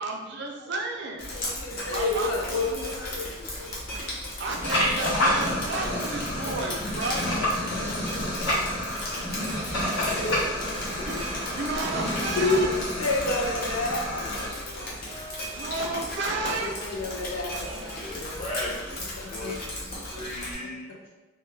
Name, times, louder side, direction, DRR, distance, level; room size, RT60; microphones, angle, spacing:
voice 1, 0.0-1.3 1.9-2.9 3.5-3.6 4.0-7.3 11.0-12.7 15.5-16.8, right 2 dB, 55° right, 1 dB, 0.4 m, -32 dB
Drip, 1.2-20.5, left 1 dB, 45° left, 0.7 m, -37 dB
voice 2, 1.3-3.2 3.6-3.7 7.4-8.1 10.1-10.9 12.4-14.9 16.4-17.9 18.2-18.4 19.2-19.5, left 2 dB, 90° left, -1 dB, 0.5 m, -30 dB
sound 1, 4.5-14.5, left 1 dB, 70° left, 1.1 m, -29 dB
voice 3, 8.2-9.4 10.1-11.1 11.5-11.6 12.2-12.6 17.6-21.1, left 1 dB, 30° left, -8 dB, 1.0 m, -40 dB
sound 2, 9.4-19.0, equal, 5° left, 0.7 m, -47 dB
2.3 x 2.2 x 3.1 m, 1.2 s
head